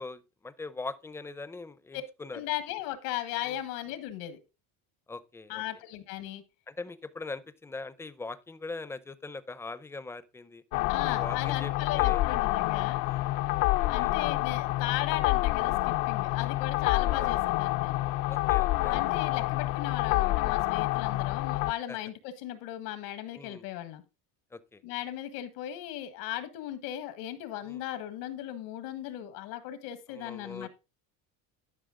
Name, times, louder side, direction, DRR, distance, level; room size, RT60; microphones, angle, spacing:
voice 1, 0.0-2.4 3.4-3.6 5.1-5.6 6.7-10.6 11.1-12.2 13.0-13.3 14.0-14.1 16.3-16.5 17.0-17.4 18.3-19.0 21.9-22.0 23.3-23.6 24.5-24.8 27.6-27.8 30.1-30.7, left 3 dB, 5° left, 0.5 m, -41 dB
voice 2, 2.3-4.4 5.5-6.4 10.9-13.0 13.9-18.0 18.9-24.0 24.8-30.7, left 13 dB, 85° left, 1.8 m, -37 dB
sound 1, 10.7-21.7, left 17 dB, 55° left, 0.5 m, -28 dB
11.5 x 5.6 x 3.7 m
cardioid pair, 145°, 38 cm